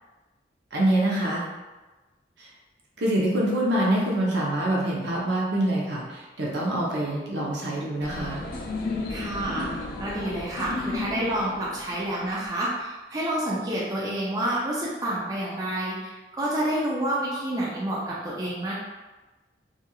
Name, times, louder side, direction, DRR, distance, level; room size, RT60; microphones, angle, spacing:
voice 1, 0.7-1.4 2.4-2.5 3.0-8.4, right 1 dB, 70° right, -4 dB, 0.6 m, -25 dB
sound 1, 8.0-12.5, left 3 dB, 50° left, 0.3 m, -33 dB
voice 2, 9.1-18.7, right 1 dB, 20° right, -6 dB, 0.4 m, -29 dB
2.9 x 2.4 x 2.3 m, 1.2 s
head